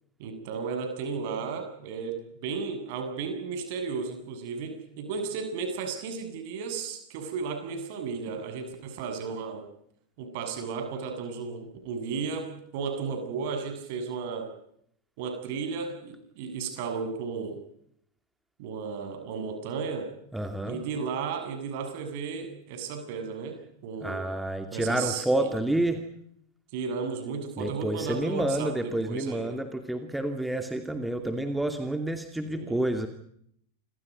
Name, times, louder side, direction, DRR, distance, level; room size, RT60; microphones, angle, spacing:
voice 1, 0.2-9.7 10.2-14.5 15.2-17.6 18.6-20.1 20.6-24.2 24.7-25.2 26.7-29.6 32.4-32.8, right 5 dB, 50° right, 7 dB, 7.7 m, -34 dB
voice 2, 20.3-20.8 24.0-26.0 27.6-33.1, right 1 dB, 5° right, 6 dB, 2.5 m, -29 dB
29.5 x 24.5 x 5.4 m, 0.69 s
figure-of-eight pair, 90°, 0 cm